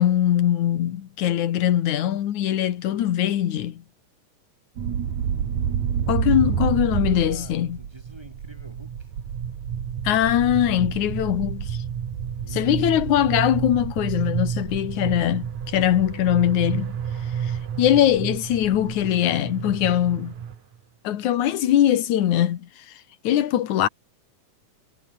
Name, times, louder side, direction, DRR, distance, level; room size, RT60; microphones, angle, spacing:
voice 1, 0.0-3.8 6.1-7.8 10.0-11.8 12.5-17.0 17.4-17.5 17.8-20.3 21.0-22.7 23.2-23.9, left 11 dB, 65° left, 2.8 m, -21 dB
sound 1, 4.8-20.6, right 8 dB, 60° right, 3.5 m, -29 dB
voice 2, 5.2-5.9 7.0-9.1 12.3-12.7 18.0-18.2, right 1 dB, 5° right, 7.2 m, -50 dB
omnidirectional pair, 3.8 m